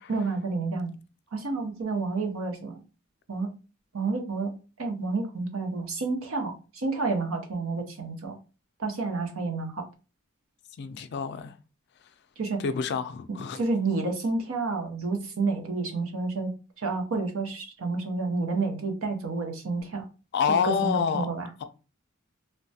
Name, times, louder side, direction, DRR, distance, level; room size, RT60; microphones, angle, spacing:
voice 1, 0.1-0.9 1.3-2.8 3.3-3.5 3.9-4.5 4.8-8.3 8.8-9.9 12.4-12.6 13.5-16.5 16.8-20.1 20.5-21.5, right 3 dB, 85° right, 0.7 m, -30 dB
voice 2, 10.8-11.6 12.6-13.6 20.3-21.3, left 6 dB, 55° left, 0.3 m, -27 dB
3.2 x 2.1 x 2.7 m
head